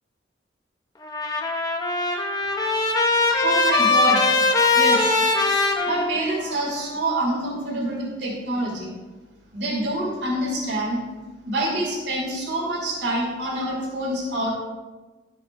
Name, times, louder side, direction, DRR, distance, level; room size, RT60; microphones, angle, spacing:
Trumpet, 1.0-6.6, left 3 dB, 20° left, 0.9 m, -21 dB
voice 1, 3.3-4.2 4.7-5.2 5.8-8.9 9.5-11.0 11.4-14.5, right 1 dB, 65° right, -2 dB, 2.6 m, -26 dB
13.5 x 8.1 x 2.7 m, 1.2 s
head